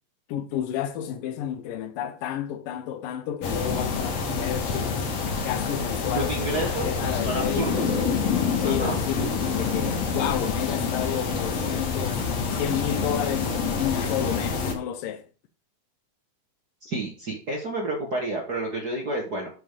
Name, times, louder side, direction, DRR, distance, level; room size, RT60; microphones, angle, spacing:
voice 1, 0.3-5.1 5.4-7.9 8.6-15.2, left 10 dB, 70° left, 2.3 m, -31 dB
sound 1, 3.4-14.7, left 5 dB, 55° left, 2.2 m, -27 dB
voice 2, 6.1-7.7 8.6-8.9 16.8-19.5, right 2 dB, 55° right, 1.1 m, -30 dB
7.7 x 5.3 x 6.7 m
omnidirectional pair, 4.7 m